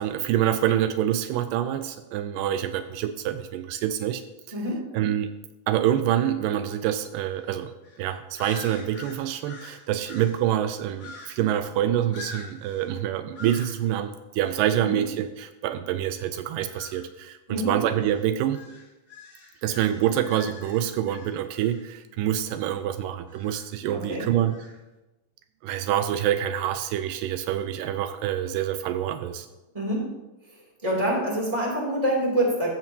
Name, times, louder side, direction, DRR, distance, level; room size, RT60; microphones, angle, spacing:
voice 1, 0.0-4.2 4.9-5.3 5.7-7.7 8.0-18.6 19.6-24.6 25.6-29.5, right 11 dB, 85° right, 9 dB, 2.2 m, -26 dB
voice 2, 4.5-4.8 14.8-15.0 17.5-17.7 23.9-24.3 29.7-30.1 30.8-32.7, right 1 dB, 10° right, -3 dB, 2.4 m, -26 dB
sound 1, 7.3-7.5 7.8-8.0 8.4-10.5 11.0-11.6 12.1-12.9 13.3-13.8 14.4-14.7 16.5-17.1 17.9-21.9 23.3-23.7 24.4-24.8, left 3 dB, 35° left, 2.2 m, -45 dB
14.0 x 8.0 x 2.8 m, 1.0 s
omnidirectional pair, 3.9 m